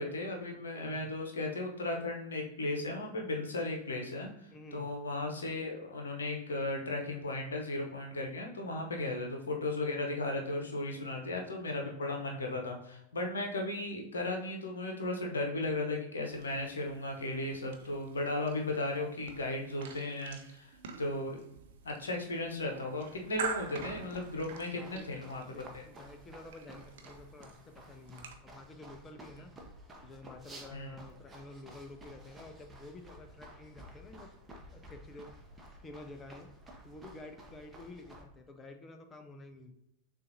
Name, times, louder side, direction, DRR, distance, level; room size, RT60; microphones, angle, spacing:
voice 1, 0.0-21.4 21.8-25.8 30.7-30.9, left 2 dB, 70° left, 2 dB, 0.9 m, -36 dB
voice 2, 0.7-1.1 4.5-4.9 9.0-9.2 11.0-11.4 11.8-12.1 24.7-25.1 25.5-29.5 30.0-34.3 34.7-35.3 35.8-36.5 36.8-39.7, left 2 dB, 20° left, 6 dB, 0.6 m, -50 dB
sound 1, 16.3-28.3, right 6 dB, 55° right, 0.6 m, -47 dB
sound 2, 23.2-38.2, right 1 dB, 10° right, 0.8 m, -53 dB
6.5 x 2.5 x 2.8 m, 0.81 s
figure-of-eight pair, 90°, 0 cm